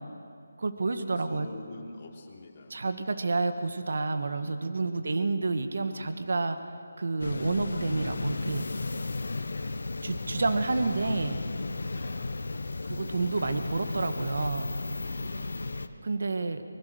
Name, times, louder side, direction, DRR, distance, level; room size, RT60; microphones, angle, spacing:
voice 1, 0.6-1.5 2.7-6.6 7.0-8.7 10.0-11.4 12.8-14.8 16.0-16.6, right 3 dB, 65° right, 8 dB, 1.7 m, -29 dB
voice 2, 1.1-3.1 4.3-4.7 5.0-5.5 7.3-7.7 9.6-10.1 11.9-12.5 15.0-15.9, left 3 dB, 35° left, -1 dB, 3.4 m, -49 dB
sound 1, 7.2-15.9, left 3 dB, 70° left, 1.3 m, -34 dB
23.5 x 21.5 x 6.6 m, 2.4 s
figure-of-eight pair, 165°, 0 cm